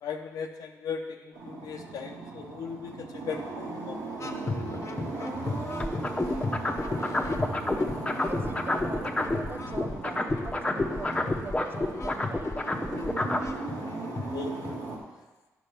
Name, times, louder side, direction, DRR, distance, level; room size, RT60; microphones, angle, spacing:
voice 1, 0.0-4.0 14.3-14.6, left 6 dB, 80° left, 2 dB, 0.8 m, -37 dB
sound 1, 1.3-15.0, right 3 dB, 85° right, 2.1 m, -38 dB
sound 2, 4.2-14.8, left 3 dB, 50° left, 1.0 m, -37 dB
voice 2, 5.0-6.0 6.5-6.8 8.3-12.5, right 3 dB, 35° right, 9 dB, 0.7 m, -41 dB
sound 3, 5.8-9.5 9.7-13.5, left 2 dB, 20° left, 1.0 m, -28 dB
9.3 x 6.0 x 5.7 m, 1.2 s
cardioid pair, 70°, 6 cm